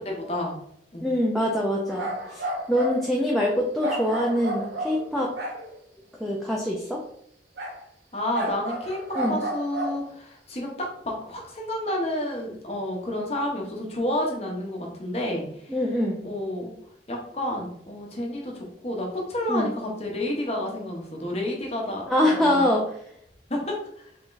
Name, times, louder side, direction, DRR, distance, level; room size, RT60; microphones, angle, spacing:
voice 1, 0.0-0.6 0.9-1.1 8.1-15.8 16.2-16.7 17.1-22.7 23.5-24.1, left 1 dB, 35° left, -1 dB, 0.8 m, -30 dB
voice 2, 1.0-5.3 6.2-7.0 9.2-9.4 15.7-16.2 19.5-19.7 22.1-22.8, left 1 dB, ahead, -4 dB, 0.4 m, -24 dB
sound 1, 1.9-3.0 3.8-5.8 7.6-7.8 8.3-10.0, right 1 dB, 75° right, 0.8 m, -32 dB
3.7 x 3.5 x 2.5 m, 0.69 s
head